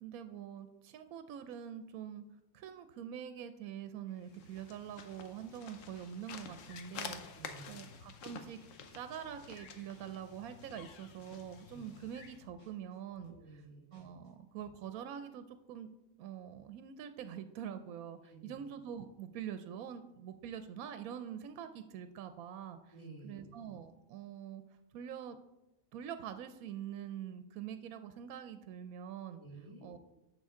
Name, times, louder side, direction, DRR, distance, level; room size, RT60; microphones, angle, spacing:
voice 1, 0.0-2.2 2.5-7.2 7.7-8.6 8.9-13.6 13.9-15.9 16.2-22.9 23.2-24.6 24.9-25.4 25.9-29.4 29.8-30.0, right 9 dB, 80° right, 10 dB, 1.0 m, -45 dB
sound 1, 4.2-12.4, left 6 dB, 65° left, 1.1 m, -50 dB
sound 2, 5.9-9.0 9.2-14.3 14.6-14.8, left 1 dB, 85° left, 3.5 m, -63 dB
voice 2, 7.4-7.8 11.7-11.8 13.3-13.9 18.2-18.5 22.9-23.4 29.4-29.9, right 2 dB, 20° left, -5 dB, 2.4 m, -52 dB
10.5 x 7.0 x 3.7 m, 0.97 s
omnidirectional pair, 1.5 m